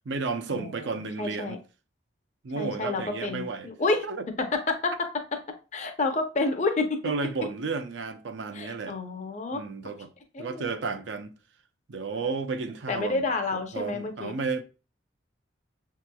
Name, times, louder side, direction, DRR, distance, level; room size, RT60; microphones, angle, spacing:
voice 1, 0.1-1.6 2.4-3.7 4.0-4.2 7.0-9.0 9.5-10.1 10.4-11.3 11.9-13.3 13.5-14.6, right 4 dB, 75° right, 0.5 m, -32 dB
voice 2, 1.2-1.6 2.6-4.1 4.4-5.1 5.7-7.0 8.5-9.6 10.3-10.7 12.1-12.3 12.9-14.3, left 3 dB, 40° left, 0.6 m, -29 dB
6.7 x 2.9 x 2.2 m
head